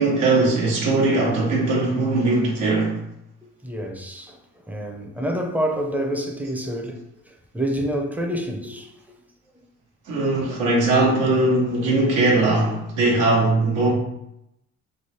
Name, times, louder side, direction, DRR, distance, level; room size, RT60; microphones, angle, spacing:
voice 1, 0.0-3.0 10.1-13.9, right 2 dB, 90° right, 1.1 m, -20 dB
voice 2, 3.6-4.4 4.7-8.9 9.5-9.6, equal, 5° right, 0.6 m, -28 dB
3.3 x 2.0 x 4.2 m
cardioid pair, 90°, 30 cm